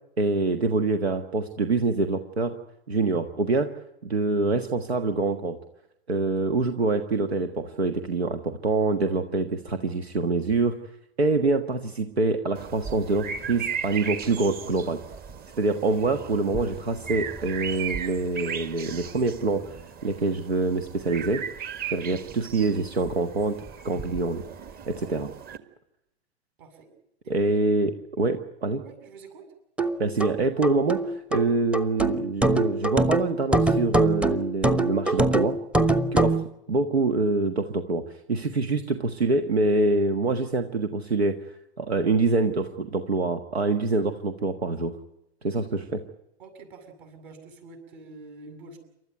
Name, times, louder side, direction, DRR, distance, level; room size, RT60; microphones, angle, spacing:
voice 1, 0.2-2.6 2.9-3.7 4.0-5.6 6.1-10.8 11.2-15.0 15.6-21.4 21.9-23.6 23.8-24.4 24.9-25.3 27.3-28.8 30.0-35.6 36.1-41.4 41.8-44.9 45.4-46.0, right 3 dB, 85° right, 8 dB, 1.6 m, -25 dB
voice 2, 6.2-6.5 22.2-22.4 26.6-26.9 27.2-27.6 28.8-29.5 45.7-45.8 46.4-48.8, right 3 dB, 50° right, 5 dB, 7.6 m, -47 dB
sound 1, 12.5-25.6, right 7 dB, 30° right, 1.8 m, -37 dB
sound 2, 29.8-36.4, right 2 dB, 5° right, 0.9 m, -24 dB
28.5 x 13.0 x 9.2 m, 0.87 s
figure-of-eight pair, 100°, 31 cm